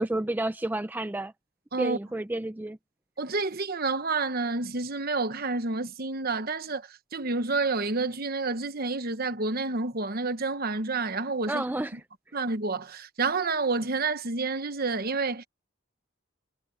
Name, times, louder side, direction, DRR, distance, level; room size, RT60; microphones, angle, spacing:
voice 1, 0.0-1.3 1.8-2.8 11.5-12.0, right 1 dB, 10° right, 0.4 m, -30 dB
voice 2, 3.2-11.6 12.3-15.5, right 3 dB, 45° right, 1.1 m, -29 dB
head